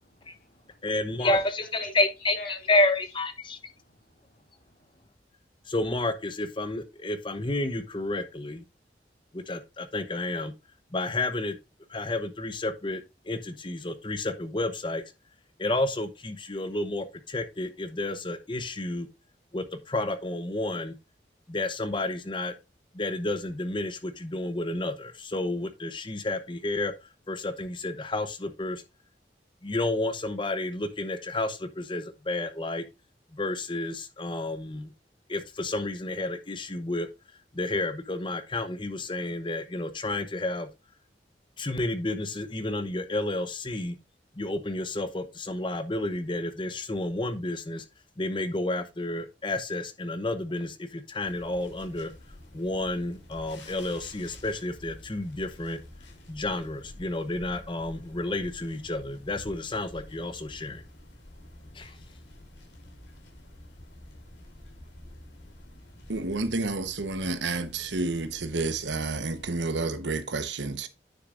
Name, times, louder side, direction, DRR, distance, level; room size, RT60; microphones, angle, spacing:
voice 1, 0.3-0.9 1.2-1.4 1.6-2.1 2.4-2.9 3.7-5.0, left 2 dB, 55° left, 3.9 m, -44 dB
voice 2, 0.8-3.6 5.7-8.6 9.3-10.5 10.9-11.6 11.9-15.0 15.6-19.1 19.5-20.9 21.5-22.5 22.9-26.9 27.3-28.8 29.6-32.8 33.3-34.9 35.3-37.1 37.5-40.7 41.6-44.0 44.4-47.8 48.2-52.1 52.5-55.8 56.3-60.8 61.7-61.9, left 2 dB, 30° left, 0.8 m, -30 dB
sound 1, 51.2-69.6, left 1 dB, 90° left, 3.2 m, -49 dB
voice 3, 66.1-70.9, right 3 dB, 85° right, 1.1 m, -30 dB
9.8 x 6.6 x 2.5 m
head